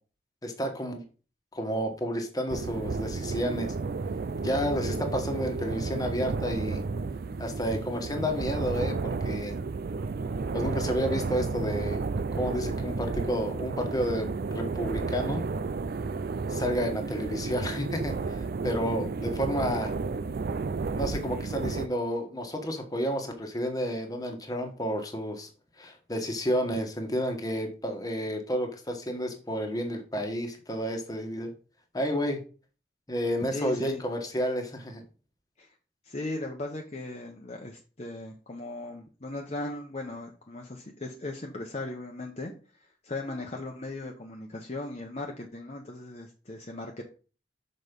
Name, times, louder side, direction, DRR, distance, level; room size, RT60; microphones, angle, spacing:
voice 1, 0.4-1.0 1.5-3.7 4.4-6.8 7.4-9.5 10.5-12.0 12.3-14.3 14.5-15.4 16.5-18.4 18.6-19.9 21.0-25.5 25.8-31.5 31.9-32.4 33.1-35.0, equal, 20° left, 4 dB, 1.5 m, -31 dB
sound 1, 2.5-21.9, right 4 dB, 55° right, 0.4 m, -32 dB
voice 2, 33.5-34.0 35.6-35.7 36.0-42.5 42.8-47.0, left 2 dB, 40° left, 1 dB, 1.0 m, -38 dB
6.5 x 5.2 x 5.2 m, 0.36 s
head